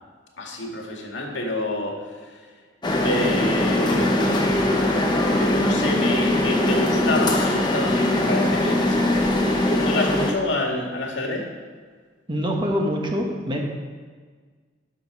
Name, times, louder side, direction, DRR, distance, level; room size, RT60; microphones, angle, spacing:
voice 1, 0.4-1.9 3.0-4.5 5.4-9.2 9.7-11.4, left 1 dB, 85° left, 0 dB, 2.0 m, -28 dB
sound 1, 2.8-10.3, left 1 dB, 25° left, 1.1 m, -21 dB
voice 2, 12.3-13.6, equal, 25° right, 1 dB, 1.3 m, -24 dB
11.5 x 6.5 x 4.8 m, 1.5 s
head